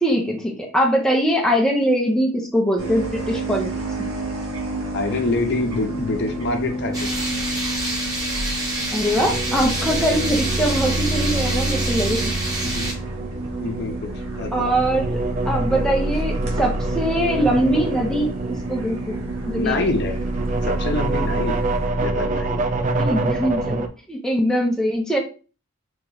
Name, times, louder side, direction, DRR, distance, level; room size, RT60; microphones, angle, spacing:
voice 1, 0.0-3.7 4.0-4.1 8.9-12.3 14.5-15.2 15.5-19.9 23.0-23.8 24.1-25.2, equal, 5° left, 0 dB, 0.6 m, -22 dB
sound 1, 2.8-21.9, right 1 dB, 90° right, 1.1 m, -33 dB
voice 2, 4.9-7.1 12.6-12.9 13.6-14.5 19.5-20.2 20.6-21.6 22.0-22.6, left 2 dB, 55° left, 4 dB, 0.7 m, -26 dB
sound 2, 6.9-12.9, right 1 dB, 15° right, 1.0 m, -27 dB
sound 3, 9.2-23.9, right 2 dB, 35° right, 0.4 m, -25 dB
3.0 x 3.0 x 3.8 m, 0.35 s
head